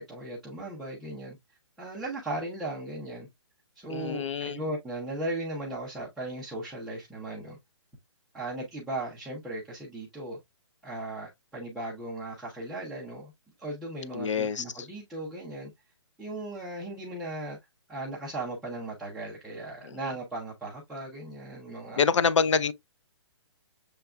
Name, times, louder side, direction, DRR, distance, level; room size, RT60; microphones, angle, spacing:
voice 1, 0.0-1.4 1.8-3.3 3.8-7.6 8.3-10.4 10.8-13.3 13.6-15.7 16.2-17.6 17.9-22.0, right 2 dB, ahead, 0.4 m, -37 dB
voice 2, 3.9-4.6 14.1-14.6 19.8-20.0 22.0-22.7, left 6 dB, 80° left, 0.6 m, -26 dB
6.8 x 3.3 x 2.3 m
hypercardioid pair, 175°, 15 cm